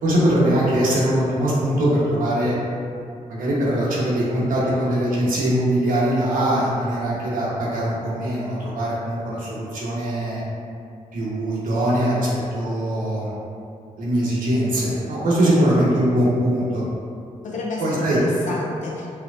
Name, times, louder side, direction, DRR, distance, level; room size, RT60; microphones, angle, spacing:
voice 1, 0.0-2.5 3.3-10.4 11.1-13.3 14.0-16.9 17.8-18.2, right 1 dB, 80° right, -7 dB, 1.0 m, -21 dB
voice 2, 17.4-19.1, left 2 dB, 60° left, -3 dB, 0.7 m, -30 dB
4.4 x 2.3 x 2.4 m, 2.5 s
cardioid pair, 70°, 14 cm